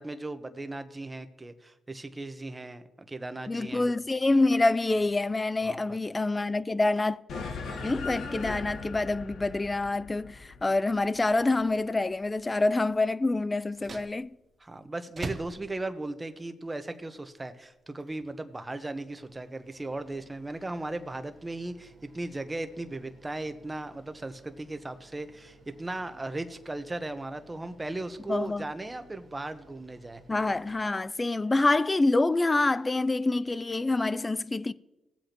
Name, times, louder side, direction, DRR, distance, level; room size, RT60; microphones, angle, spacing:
voice 1, 0.0-3.9 5.6-6.0 14.6-30.2, right 2 dB, 20° right, 1.1 m, -37 dB
voice 2, 3.5-7.2 7.8-14.3 28.3-28.6 30.3-34.7, left 2 dB, 25° left, 0.4 m, -26 dB
sound 1, 7.3-12.1, left 4 dB, 70° left, 1.3 m, -39 dB
sound 2, 13.6-31.4, right 3 dB, 45° right, 0.9 m, -50 dB
19.0 x 7.9 x 3.0 m
supercardioid pair, 65°, 0 cm